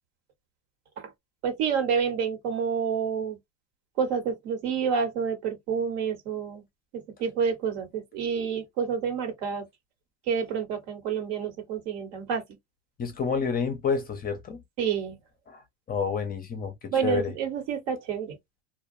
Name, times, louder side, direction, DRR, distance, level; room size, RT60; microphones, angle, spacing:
voice 1, 1.4-3.4 4.0-6.6 6.9-9.6 10.3-12.4 14.8-15.2 16.9-18.4, right 6 dB, 65° right, 1.3 m, -28 dB
voice 2, 13.0-14.6 15.5-15.6 15.9-17.3, left 5 dB, 25° left, 0.5 m, -29 dB
2.3 x 2.3 x 2.6 m
supercardioid pair, 115°, 38 cm